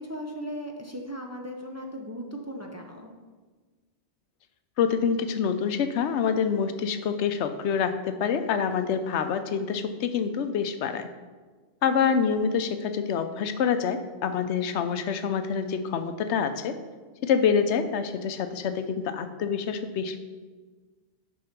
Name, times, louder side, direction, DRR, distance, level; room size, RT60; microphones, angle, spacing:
voice 1, 0.0-3.1 12.0-12.2, equal, 20° right, 1 dB, 0.6 m, -37 dB
voice 2, 4.8-11.1 11.8-16.8 17.2-20.3, left 6 dB, 80° left, 9 dB, 0.9 m, -26 dB
6.4 x 5.4 x 5.8 m, 1.4 s
omnidirectional pair, 1.1 m